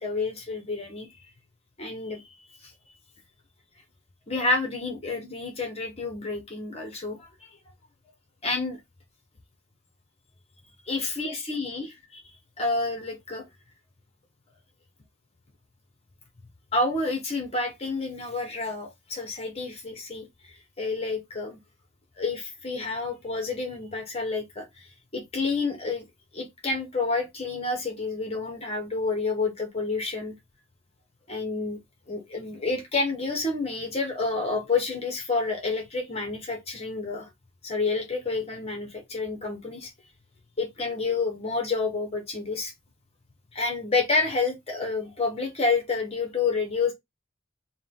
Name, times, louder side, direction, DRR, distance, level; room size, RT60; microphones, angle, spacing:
voice 1, 0.0-1.1 1.8-2.3 2.6-2.7 4.3-7.5 8.4-8.8 10.9-13.4 16.7-21.6 22.2-24.9 25.1-26.1 26.3-30.3 31.3-31.8 32.1-37.3 37.6-39.9 40.6-42.7 43.5-46.9, left 3 dB, 30° left, 0.9 m, -29 dB
4.7 x 2.2 x 3.7 m
head